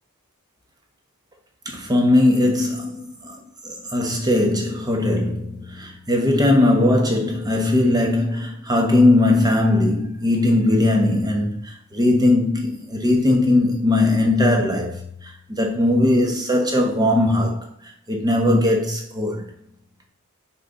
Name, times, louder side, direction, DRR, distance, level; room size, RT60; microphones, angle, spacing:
voice 1, 1.7-3.4 3.6-15.0 15.5-17.7 18.1-19.5, left 1 dB, 20° right, 1.2 m, -19 dB
6.0 x 4.5 x 4.0 m
head